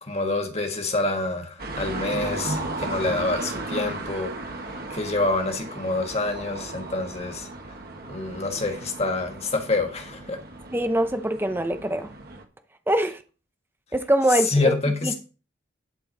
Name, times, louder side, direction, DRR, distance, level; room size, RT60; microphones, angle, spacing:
voice 1, 0.0-4.3 4.9-7.5 8.1-10.4 14.5-15.1, left 2 dB, 30° left, 1.4 m, -27 dB
sound 1, 1.6-12.4, right 2 dB, 50° right, 1.5 m, -35 dB
voice 2, 10.7-12.1 12.9-13.2 13.9-14.8 15.0-15.1, right 1 dB, 10° right, 0.7 m, -23 dB
11.0 x 4.5 x 5.3 m
head